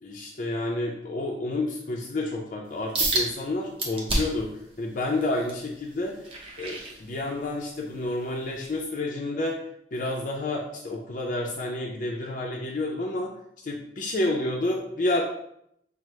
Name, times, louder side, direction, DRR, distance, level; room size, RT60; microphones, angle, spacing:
voice 1, 0.0-4.5 4.8-6.2 6.6-9.6 9.9-13.3 13.6-15.2, left 2 dB, 45° left, -1 dB, 0.5 m, -29 dB
sound 1, 2.9-3.3 3.8-4.5 5.0-7.5 8.0-8.3 8.8-8.9, right 1 dB, 30° right, 0.7 m, -29 dB
5.9 x 2.0 x 3.1 m, 0.74 s
head